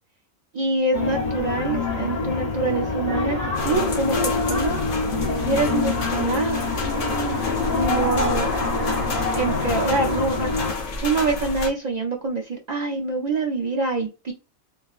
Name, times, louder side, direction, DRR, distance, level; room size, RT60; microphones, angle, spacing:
voice 1, 0.5-4.8 5.4-6.6 7.7-8.5 9.3-14.3, right 3 dB, 70° right, 0.4 m, -25 dB
sound 1, 0.9-10.7, left 3 dB, 35° left, 0.7 m, -25 dB
sound 2, 3.5-11.7, left 3 dB, 60° left, 1.1 m, -30 dB
4.5 x 2.3 x 2.4 m
omnidirectional pair, 1.4 m